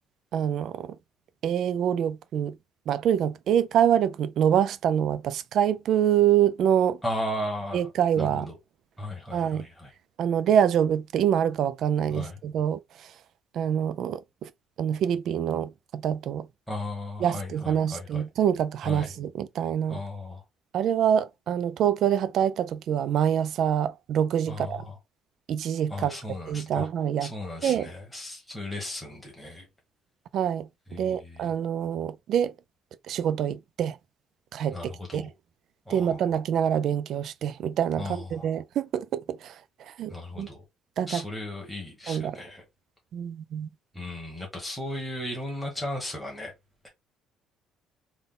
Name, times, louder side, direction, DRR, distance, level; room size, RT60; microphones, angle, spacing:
voice 1, 0.3-1.0 1.4-2.6 2.9-7.0 7.7-8.5 9.3-9.7 10.2-13.1 13.5-14.5 14.8-16.5 17.2-20.0 20.7-24.8 25.5-26.1 26.5-27.3 27.6-27.9 30.3-32.5 33.1-34.0 34.5-35.3 35.9-40.5 41.0-41.3 42.1-42.4 43.1-43.7, right 9 dB, 50° right, 0.3 m, -26 dB
voice 2, 7.0-7.9 8.2-8.6 9.0-9.9 12.1-12.4 16.7-18.2 18.8-19.1 19.9-20.4 24.5-25.0 25.9-26.9 27.2-29.7 30.9-31.5 34.7-35.3 35.9-36.3 38.0-38.5 40.1-40.6 41.1-42.6 43.9-46.5, left 1 dB, ahead, 1.2 m, -36 dB
3.6 x 2.1 x 3.8 m
cardioid pair, 165°, 0 cm